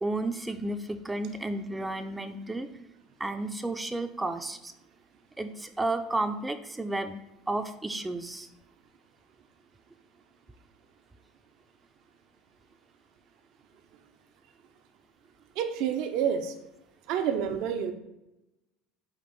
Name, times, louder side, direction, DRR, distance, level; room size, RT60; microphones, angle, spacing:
voice 1, 0.0-2.7 3.2-4.7 5.4-7.2 7.5-8.5, right 2 dB, 10° right, 8 dB, 0.4 m, -32 dB
voice 2, 15.6-16.5 17.1-17.9, right 8 dB, 65° right, 6 dB, 0.5 m, -28 dB
5.2 x 2.5 x 4.0 m, 0.91 s
supercardioid pair, 95°, 0 cm